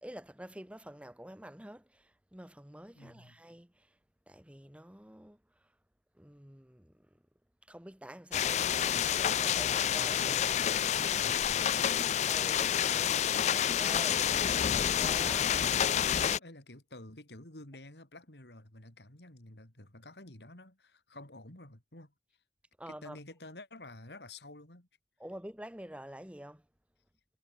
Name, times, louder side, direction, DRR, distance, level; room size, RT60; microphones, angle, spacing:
voice 1, 0.0-4.0 4.3-5.7 6.1-7.2 7.7-11.1 12.3-14.5 15.0-15.5 22.8-23.2 25.2-26.6, right 1 dB, 5° right, 1.4 m, -48 dB
voice 2, 2.9-3.4 10.9-11.9 15.7-15.9 16.4-22.1 22.9-24.9, left 2 dB, 70° left, 4.1 m, -50 dB
sound 1, 8.3-16.4, left 9 dB, 40° left, 0.3 m, -28 dB
head